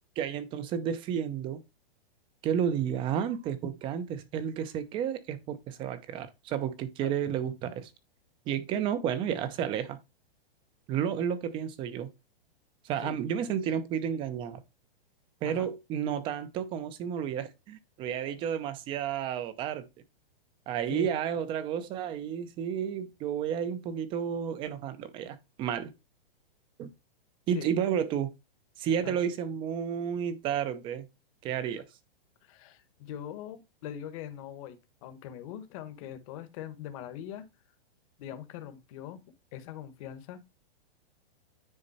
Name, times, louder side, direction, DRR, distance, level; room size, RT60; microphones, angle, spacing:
voice 1, 0.2-1.6 2.4-7.9 8.5-10.0 10.9-12.1 12.8-14.6 15.4-19.9 20.7-25.9 26.8-26.9 27.5-28.3 28.8-31.1 31.4-31.9, right 8 dB, 15° right, 0.7 m, -31 dB
voice 2, 32.4-37.5 38.2-39.2 39.5-40.4, left 10 dB, 35° left, 1.2 m, -42 dB
9.8 x 4.3 x 4.1 m
hypercardioid pair, 160°, 29 cm